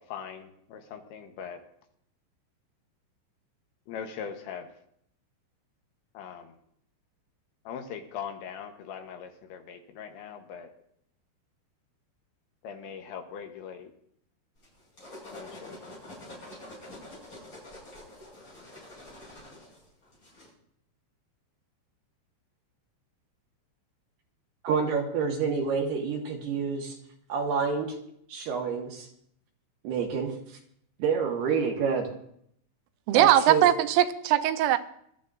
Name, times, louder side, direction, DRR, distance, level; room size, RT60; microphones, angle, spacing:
voice 1, 0.0-1.6 3.9-4.7 6.1-6.5 7.7-10.7 12.6-13.9 15.3-15.8, left 7 dB, 75° left, 5 dB, 3.1 m, -40 dB
sound 1, 14.6-20.5, left 1 dB, 25° left, 6.4 m, -46 dB
voice 2, 24.6-26.9 27.3-28.0 28.3-29.1 29.8-30.3 31.0-32.1 33.1-33.7, right 5 dB, 70° right, 1 dB, 2.8 m, -28 dB
voice 3, 33.1-34.8, right 12 dB, 85° right, 10 dB, 3.3 m, -21 dB
24.5 x 13.0 x 2.5 m, 0.70 s
omnidirectional pair, 5.7 m